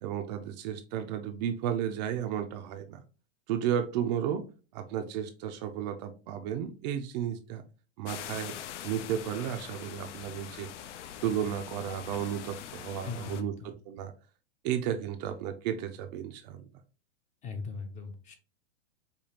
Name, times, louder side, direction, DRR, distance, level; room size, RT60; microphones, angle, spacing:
voice 1, 0.0-3.0 3.5-4.4 4.7-7.6 8.0-8.6 8.8-10.7 11.2-14.1 14.6-16.7, right 9 dB, 40° right, 7 dB, 0.4 m, -33 dB
sound 1, 8.0-13.4, left 10 dB, 80° left, 0.5 m, -43 dB
voice 2, 13.0-13.7 17.4-18.4, left 4 dB, 20° left, 7 dB, 0.5 m, -39 dB
5.0 x 2.3 x 2.8 m, 0.34 s
hypercardioid pair, 130°, 36 cm